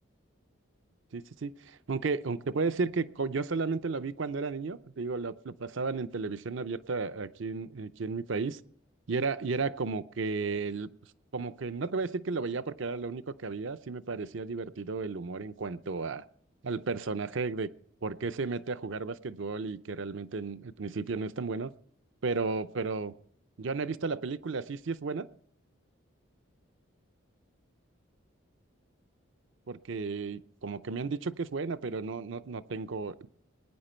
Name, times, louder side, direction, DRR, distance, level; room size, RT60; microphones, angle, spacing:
voice 1, 1.1-8.6 9.1-10.9 11.3-16.2 16.6-17.7 18.0-21.7 22.2-23.1 23.6-25.3 29.7-33.3, right 4 dB, 70° right, 12 dB, 0.6 m, -33 dB
21.0 x 9.9 x 4.4 m, 0.62 s
head